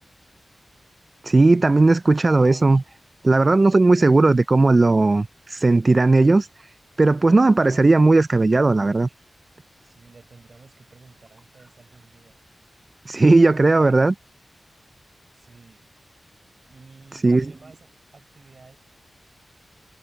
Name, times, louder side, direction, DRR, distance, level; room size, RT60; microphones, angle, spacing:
voice 1, 1.2-2.8 3.2-6.5 7.0-9.1 13.1-14.1 17.2-17.5, right 3 dB, 40° right, 0.3 m, -16 dB
voice 2, 9.8-12.4 15.3-15.8 16.7-18.8, right 4 dB, 55° right, 6.4 m, -51 dB
cardioid pair, 65°, 0 cm